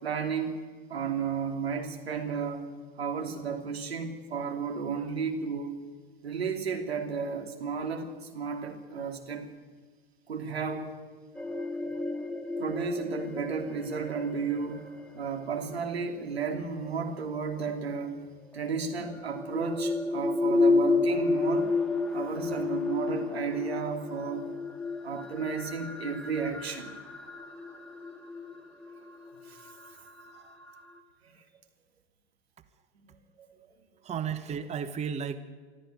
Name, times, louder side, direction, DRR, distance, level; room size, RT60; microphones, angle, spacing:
voice 1, 0.0-0.6 0.9-2.7 3.0-5.7 6.2-9.5 10.3-10.9 12.6-14.9 15.1-18.2 18.5-21.7 22.1-24.5 25.0-26.9 29.5-29.7 33.0-33.1, right 5 dB, 80° right, 3 dB, 2.9 m, -33 dB
sound 1, 11.4-17.4 18.5-31.0, left 3 dB, ahead, 2.0 m, -32 dB
voice 2, 34.0-35.4, right 7 dB, 20° right, 11 dB, 1.1 m, -33 dB
23.5 x 13.5 x 9.2 m, 1.5 s
figure-of-eight pair, 90°, 31 cm